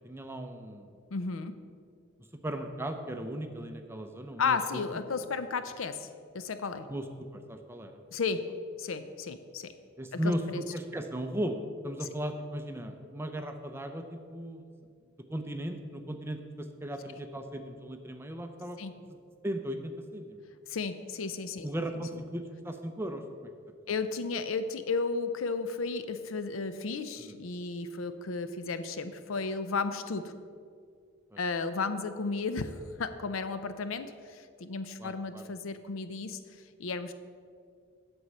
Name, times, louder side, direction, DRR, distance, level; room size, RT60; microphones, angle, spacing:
voice 1, 0.0-0.9 2.4-4.8 6.9-8.0 10.0-14.6 15.3-18.8 19.4-20.4 21.6-23.5 27.2-27.3 31.3-31.4 35.0-35.5, right 1 dB, 10° right, 5 dB, 0.6 m, -37 dB
voice 2, 1.1-1.5 4.4-6.1 6.3-6.9 8.1-8.4 8.8-9.7 10.1-10.6 12.0-12.1 18.8-18.9 20.7-21.7 22.1-22.2 23.9-30.3 31.4-36.4 36.8-37.1, left 4 dB, 85° left, 11 dB, 0.5 m, -33 dB
7.9 x 7.1 x 5.5 m, 2.2 s
head